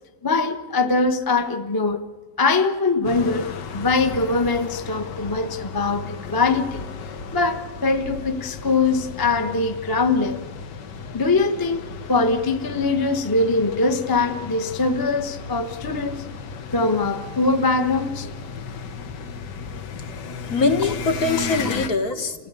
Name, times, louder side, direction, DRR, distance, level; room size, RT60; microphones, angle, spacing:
voice 1, 0.2-2.0 2.4-3.5 3.7-6.8 7.3-10.5 11.1-16.3 16.7-18.3, left 3 dB, 15° left, 7 dB, 0.8 m, -22 dB
sound 1, 3.0-21.9, left 5 dB, 85° left, 1.7 m, -35 dB
voice 2, 19.9-22.5, left 3 dB, 60° left, 6 dB, 1.9 m, -24 dB
28.5 x 15.5 x 9.6 m, 1.4 s
omnidirectional pair, 1.8 m